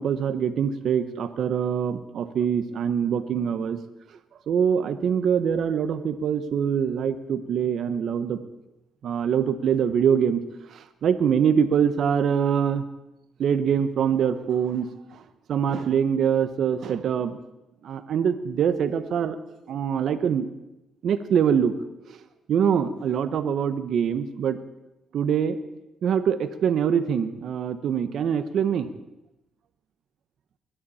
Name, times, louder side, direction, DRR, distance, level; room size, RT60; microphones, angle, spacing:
voice 1, 0.0-3.8 4.5-8.4 9.0-10.4 11.0-12.8 13.4-14.9 15.5-17.4 17.8-19.4 19.7-20.4 21.0-21.7 22.5-24.6 25.1-25.6 26.0-28.9, right 8 dB, 65° right, 10 dB, 1.1 m, -24 dB
22.0 x 11.5 x 4.3 m, 0.91 s
cardioid pair, 90°, 0 cm